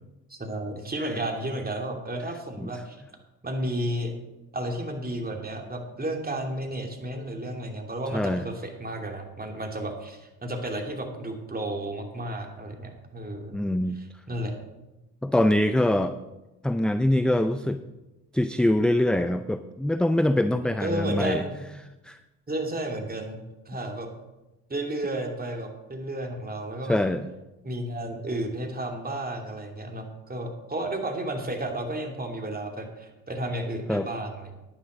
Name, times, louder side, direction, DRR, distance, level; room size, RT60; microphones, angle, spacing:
voice 1, 0.3-3.0 3.4-4.1 4.5-13.5 13.9-14.6 20.5-21.5 22.5-23.4 23.7-24.1 24.7-27.0 27.6-34.6, right 1 dB, 20° right, 2 dB, 2.8 m, -32 dB
voice 2, 8.1-8.5 13.5-14.0 15.2-16.1 16.6-17.8 18.3-21.4 22.1-22.2 26.9-27.3 33.9-34.1, left 1 dB, ahead, 10 dB, 0.4 m, -24 dB
10.0 x 9.9 x 5.3 m, 1.0 s
hypercardioid pair, 55°, 40 cm